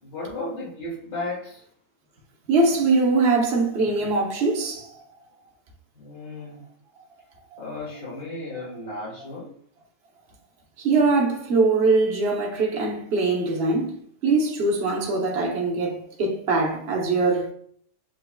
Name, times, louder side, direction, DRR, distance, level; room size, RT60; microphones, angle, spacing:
voice 1, 0.0-1.6 5.9-6.6 7.6-9.5, left 2 dB, 80° left, 2.3 m, -34 dB
voice 2, 2.5-5.0 7.5-7.6 10.8-17.5, right 3 dB, 45° right, 1.0 m, -22 dB
7.5 x 3.1 x 2.2 m
omnidirectional pair, 1.9 m